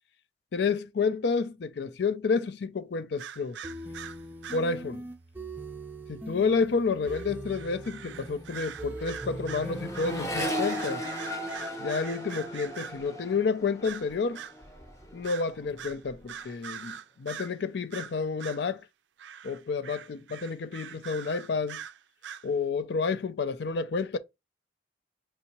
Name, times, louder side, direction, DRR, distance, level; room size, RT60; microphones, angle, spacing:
voice 1, 0.5-3.6 4.5-5.0 6.1-11.0 11.8-14.4 15.1-18.8 19.4-21.8 22.4-24.2, left 4 dB, 65° left, 0.4 m, -30 dB
sound 1, 3.2-4.7 7.0-13.1 13.8-14.6 15.2-15.5 15.8-17.6 17.9-18.7 19.2-22.5, right 8 dB, 80° right, 0.4 m, -43 dB
sound 2, 3.6-10.5, right 1 dB, 10° right, 0.4 m, -41 dB
Accelerating revving vroom, 7.2-7.5 7.7-15.3 15.6-16.2, equal, 15° left, 0.8 m, -37 dB
5.4 x 2.7 x 2.8 m
head